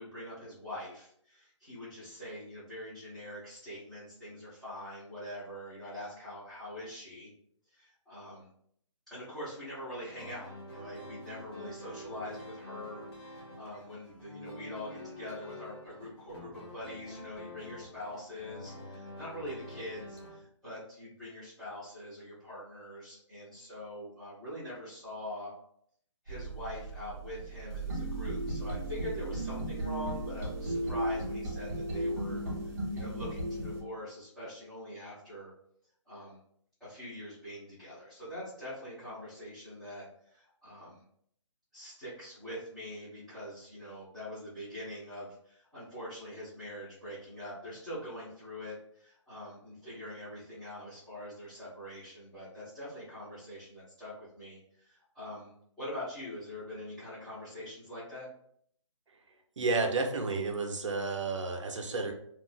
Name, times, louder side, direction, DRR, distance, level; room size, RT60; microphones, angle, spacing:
voice 1, 0.0-7.3 7.7-8.5 9.1-25.5 26.2-32.4 32.9-35.5 36.0-36.4 36.8-41.0 41.7-55.5 55.8-58.3, left 1 dB, ahead, -15 dB, 0.9 m, -44 dB
sound 1, 10.2-20.4, equal, 55° left, 0.9 m, -47 dB
sound 2, 26.3-33.8, right 1 dB, 30° right, 0.8 m, -35 dB
voice 2, 59.6-62.1, right 3 dB, 70° right, 3 dB, 0.7 m, -31 dB
2.5 x 2.0 x 3.9 m, 0.66 s
hypercardioid pair, 170°, 16 cm